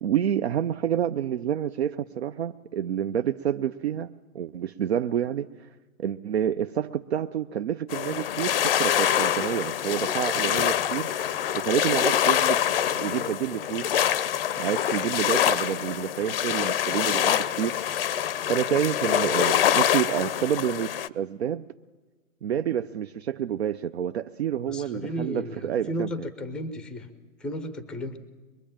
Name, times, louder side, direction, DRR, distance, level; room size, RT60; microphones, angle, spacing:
voice 1, 0.0-5.5 6.0-11.1 11.5-12.6 13.0-13.9 14.6-17.8 18.5-21.7 22.4-26.1, right 9 dB, 50° right, 8 dB, 0.7 m, -28 dB
sound 1, 7.9-21.1, left 10 dB, 40° left, 0.8 m, -25 dB
voice 2, 24.7-27.1 27.4-28.2, equal, ahead, 11 dB, 0.7 m, -34 dB
23.0 x 22.5 x 8.8 m, 1.3 s
hypercardioid pair, 145°, 42 cm